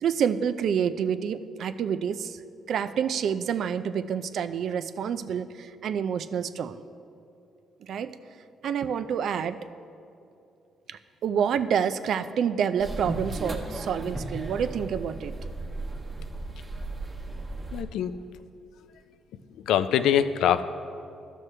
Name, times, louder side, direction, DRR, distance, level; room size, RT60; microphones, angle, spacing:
voice 1, 0.0-2.4 2.7-6.8 7.8-8.1 8.6-9.6 10.9-15.3, right 7 dB, 65° right, 12 dB, 0.3 m, -28 dB
sound 1, 12.8-17.8, right 2 dB, 30° right, 1.0 m, -35 dB
voice 2, 17.7-18.2 19.7-20.7, left 9 dB, 85° left, 12 dB, 0.3 m, -23 dB
13.0 x 6.3 x 3.3 m, 2.6 s
cardioid pair, 90°, 0 cm